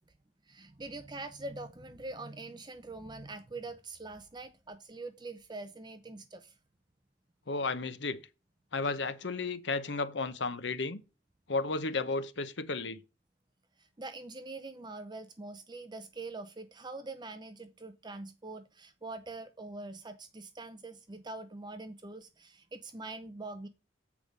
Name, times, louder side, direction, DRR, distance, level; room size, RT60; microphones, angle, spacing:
voice 1, 0.5-6.5 13.8-23.7, right 2 dB, 25° right, 0.7 m, -44 dB
voice 2, 7.5-8.2 8.7-11.0 11.5-13.0, left 3 dB, 65° left, 0.9 m, -33 dB
8.4 x 4.9 x 5.2 m
head